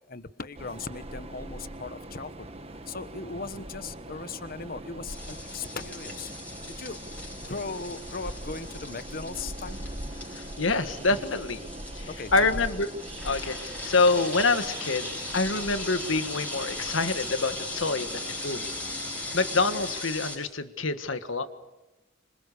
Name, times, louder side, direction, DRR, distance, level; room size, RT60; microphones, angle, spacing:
voice 1, 0.1-2.5 2.9-6.3 6.7-7.0 7.4-9.8 12.1-12.6, left 4 dB, 50° left, 12 dB, 1.2 m, -38 dB
Train, 0.6-20.0, right 1 dB, 30° right, 1.4 m, -42 dB
sound 1, 5.1-20.4, left 2 dB, 10° left, 5.6 m, -38 dB
voice 2, 10.3-11.6 11.9-12.9 13.2-18.7 19.0-21.5, left 3 dB, 85° left, 10 dB, 1.7 m, -27 dB
26.5 x 26.0 x 6.9 m, 1.0 s
head